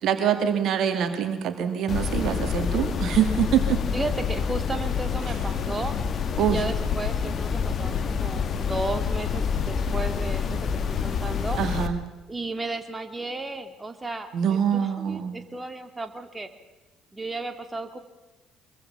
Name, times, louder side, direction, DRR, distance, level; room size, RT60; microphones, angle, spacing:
voice 1, 0.0-3.8 5.3-5.4 6.4-6.6 11.6-12.0 14.3-15.3, right 9 dB, 60° right, 8 dB, 2.1 m, -24 dB
sound 1, 1.9-11.9, left 6 dB, 45° left, 1.8 m, -27 dB
voice 2, 3.9-6.0 6.5-11.6 12.3-16.5 17.1-18.0, right 2 dB, 20° right, 7 dB, 2.4 m, -34 dB
24.5 x 23.0 x 5.7 m, 1.1 s
hypercardioid pair, 50°, 0 cm